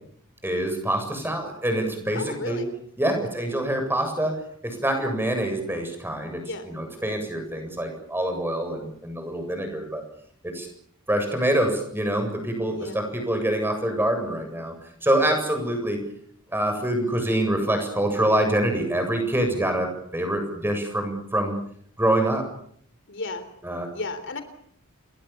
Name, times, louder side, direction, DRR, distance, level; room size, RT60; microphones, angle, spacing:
voice 1, 0.4-2.6 3.0-10.0 10.4-10.7 11.1-14.8 15.0-16.0 16.5-21.6 22.0-22.5 23.6-23.9, right 1 dB, 10° right, 5 dB, 7.7 m, -25 dB
voice 2, 2.1-2.7 6.4-6.7 12.7-13.0 15.2-15.4 23.1-23.5 23.9-24.4, left 3 dB, 55° left, 10 dB, 3.6 m, -33 dB
30.0 x 22.5 x 7.1 m, 0.65 s
head